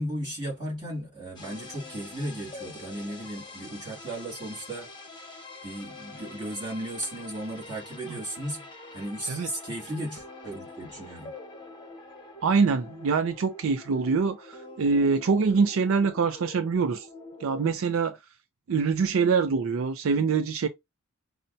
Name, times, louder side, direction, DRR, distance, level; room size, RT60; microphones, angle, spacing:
voice 1, 0.0-4.9 5.6-8.6 8.9-11.3, right 1 dB, 20° right, 2.4 m, -35 dB
sound 1, 1.3-17.7, left 2 dB, 20° left, 1.0 m, -45 dB
voice 2, 12.4-17.1 17.4-18.2 18.7-20.7, right 5 dB, 65° right, 0.4 m, -24 dB
5.4 x 2.1 x 2.6 m
head